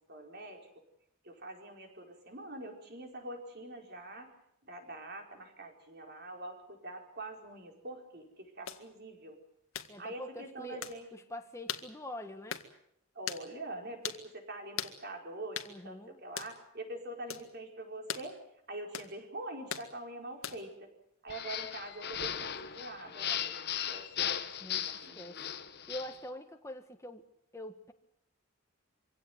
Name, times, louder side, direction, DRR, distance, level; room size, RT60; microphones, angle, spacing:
voice 1, 0.1-0.7 1.2-4.3 4.6-9.4 10.0-11.1 13.1-18.4 18.7-20.9 21.2-24.5 24.7-25.5, right 1 dB, 45° right, 2 dB, 4.9 m, -44 dB
sound 1, 8.7-8.8 9.7-9.9 10.8-11.0 11.7-11.9 12.5-12.7 13.3-13.4 14.0-14.2 14.8-15.0 15.5-15.7 16.4-16.5 17.3-17.5 18.1-18.3 18.9-19.1 19.7-19.9 20.4-20.7, left 8 dB, 65° left, 1.9 m, -39 dB
voice 2, 9.9-12.6 15.7-16.2 24.6-25.4 25.7-27.2 27.5-27.9, left 1 dB, 15° left, 5 dB, 1.4 m, -45 dB
sound 2, 21.3-26.2, left 9 dB, 45° left, 1.2 m, -37 dB
25.0 x 17.0 x 9.4 m, 0.77 s
head